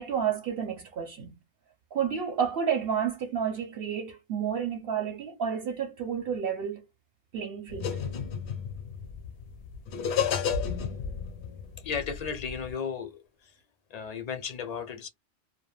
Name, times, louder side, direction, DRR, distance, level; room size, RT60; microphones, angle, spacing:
voice 1, 0.0-1.4 1.9-6.8 7.3-8.0, right 7 dB, 65° right, 0.8 m, -30 dB
sound 1, 7.7-12.7, left 7 dB, 70° left, 0.8 m, -32 dB
voice 2, 11.8-13.2 13.9-15.1, left 6 dB, 50° left, 0.5 m, -34 dB
2.2 x 2.2 x 3.1 m
omnidirectional pair, 1.2 m